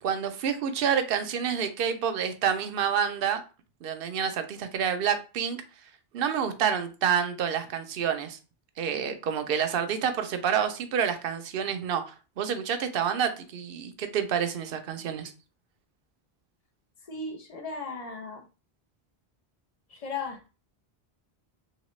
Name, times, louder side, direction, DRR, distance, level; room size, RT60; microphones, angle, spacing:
voice 1, 0.0-3.4 3.8-5.6 6.1-8.4 8.8-15.3, right 8 dB, 65° right, 0.7 m, -28 dB
voice 2, 17.1-18.5 19.9-20.5, left 4 dB, 40° left, 0.7 m, -36 dB
2.9 x 2.8 x 3.1 m
omnidirectional pair, 1.1 m